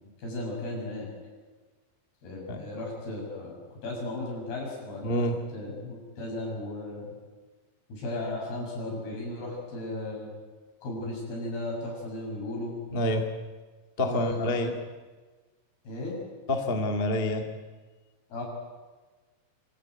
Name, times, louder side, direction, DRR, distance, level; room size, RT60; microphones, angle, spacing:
voice 1, 0.2-1.1 2.2-3.5 3.8-7.1 7.9-10.3 10.8-12.7 14.0-14.8 15.8-16.2 18.3-18.4, left 2 dB, 65° left, -2 dB, 8.6 m, -35 dB
voice 2, 5.0-5.3 12.9-13.2 14.0-14.7 16.5-17.5, left 1 dB, 45° left, 3 dB, 0.7 m, -27 dB
27.0 x 13.5 x 9.4 m, 1.3 s
omnidirectional pair, 4.9 m